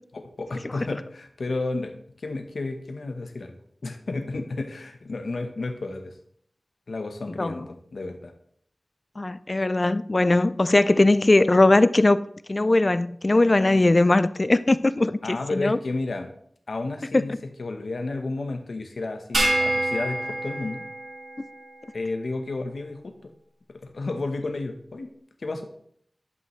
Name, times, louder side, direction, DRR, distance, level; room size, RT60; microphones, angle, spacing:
voice 1, 0.1-1.9 2.2-3.5 3.8-6.1 6.9-8.3 15.2-16.3 16.7-20.8 21.9-23.3 23.7-25.1 25.4-25.7, left 3 dB, 90° left, 1.0 m, -32 dB
voice 2, 9.2-12.2 12.5-15.8 17.1-17.2, left 2 dB, 40° left, 0.3 m, -20 dB
sound 1, 19.3-21.9, right 1 dB, 70° right, 1.7 m, -27 dB
11.0 x 5.6 x 3.1 m
wide cardioid pair, 70°, 0 cm